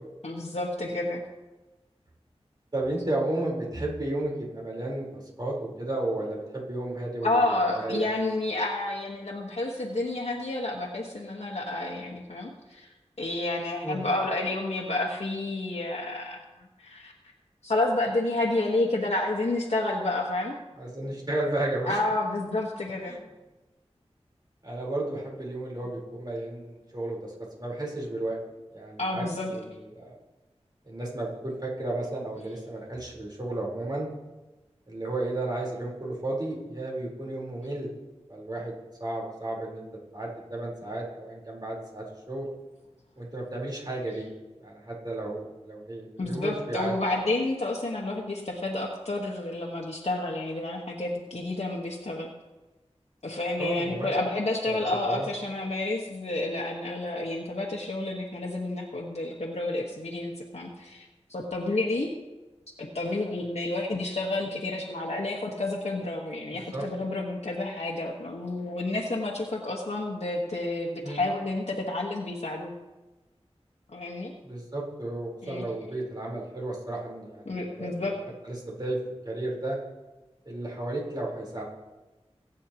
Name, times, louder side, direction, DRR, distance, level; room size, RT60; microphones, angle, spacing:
voice 1, 0.2-1.2 7.2-17.1 17.6-20.5 21.9-23.1 29.0-29.5 46.2-52.3 53.2-62.1 62.8-72.7 73.9-74.3 75.4-75.7 77.4-78.2, left 2 dB, 70° left, -2 dB, 1.4 m, -30 dB
voice 2, 2.7-8.1 13.8-14.0 20.8-22.0 23.1-23.2 24.6-27.3 27.6-28.4 28.7-29.2 29.5-29.6 29.9-30.2 30.9-34.1 34.9-37.9 38.3-38.7 39.0-39.8 40.1-42.5 43.2-44.3 44.6-46.9 53.6-54.1 54.7-54.8 55.0-55.3 66.5-66.8 71.0-71.2 74.4-78.1 78.4-79.0 79.2-79.8 80.5-81.6, right 2 dB, 40° right, -3 dB, 4.1 m, -33 dB
22.5 x 9.1 x 3.0 m, 1.1 s
wide cardioid pair, 60°, 11 cm